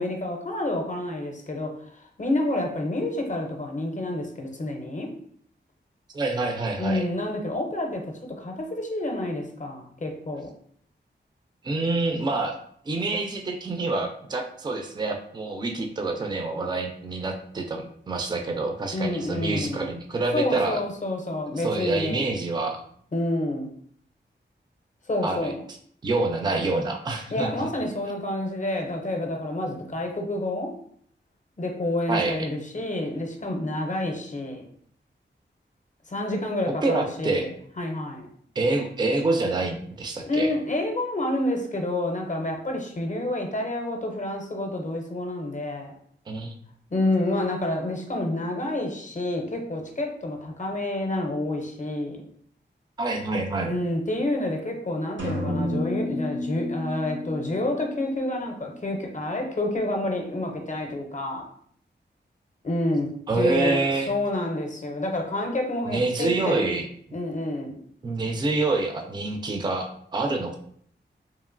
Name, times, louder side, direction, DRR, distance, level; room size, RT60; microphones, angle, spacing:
voice 1, 0.0-5.1 6.8-10.5 18.9-19.9 20.3-22.3 23.1-23.7 25.1-25.6 27.3-30.7 31.6-34.6 36.1-37.5 37.8-38.3 40.3-46.0 46.9-52.2 53.6-61.5 62.6-66.7 67.1-67.7, left 1 dB, 40° left, 2 dB, 0.5 m, -28 dB
voice 2, 6.1-7.1 11.6-12.6 12.9-20.8 21.6-22.8 25.2-25.5 26.0-27.5 32.1-32.4 36.8-37.5 38.6-40.5 46.3-46.5 53.0-53.7 63.3-64.1 65.9-66.9 68.0-70.6, right 3 dB, 20° right, 4 dB, 0.3 m, -27 dB
sound 1, 55.2-59.0, left 1 dB, 70° right, 0.7 m, -32 dB
2.9 x 2.4 x 2.5 m, 0.62 s
wide cardioid pair, 95°, 20 cm